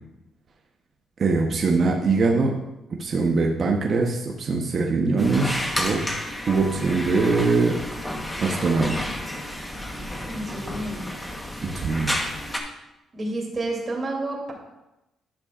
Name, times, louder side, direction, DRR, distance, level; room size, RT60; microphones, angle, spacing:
voice 1, 1.2-2.6 3.0-6.0 6.5-7.8 8.4-9.0 11.6-12.2, right 3 dB, 50° right, 0 dB, 1.0 m, -22 dB
sound 1, 5.2-12.6, left 1 dB, 10° left, 1.1 m, -31 dB
voice 2, 10.3-11.0 13.1-14.5, right 2 dB, 30° right, -2 dB, 2.9 m, -30 dB
11.5 x 6.7 x 2.5 m, 0.94 s
cardioid pair, 90°, 0 cm